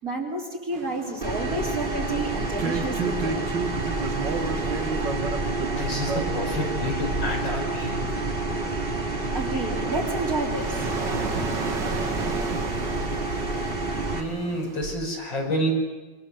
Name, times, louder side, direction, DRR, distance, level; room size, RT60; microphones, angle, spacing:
voice 1, 0.0-3.5 9.3-10.9, right 1 dB, 45° right, -2 dB, 4.3 m, -31 dB
sound 1, 0.7-14.9, right 4 dB, 65° right, 2.4 m, -34 dB
sound 2, 1.2-14.2, right 2 dB, 30° right, 2.5 m, -28 dB
voice 2, 5.8-8.1 14.1-15.7, equal, 75° left, 0 dB, 6.6 m, -29 dB
27.0 x 24.0 x 7.2 m, 1.2 s
omnidirectional pair, 2.1 m